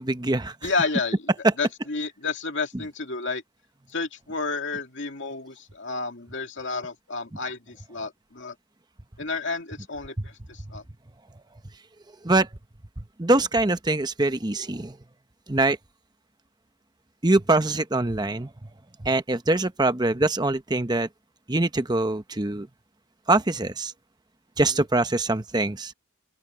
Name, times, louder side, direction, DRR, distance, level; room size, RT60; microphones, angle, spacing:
voice 1, 0.0-0.7 1.4-1.5 10.2-10.3 12.2-12.5 13.2-15.0 15.5-15.8 17.2-18.5 19.0-21.1 21.5-22.7 23.3-23.9 24.6-25.9, right 2 dB, 20° right, 0.9 m, -23 dB
voice 2, 0.6-1.3 1.6-3.4 3.9-8.5 9.2-10.8 24.7-24.8, left 4 dB, 55° left, 2.7 m, -31 dB
open air
head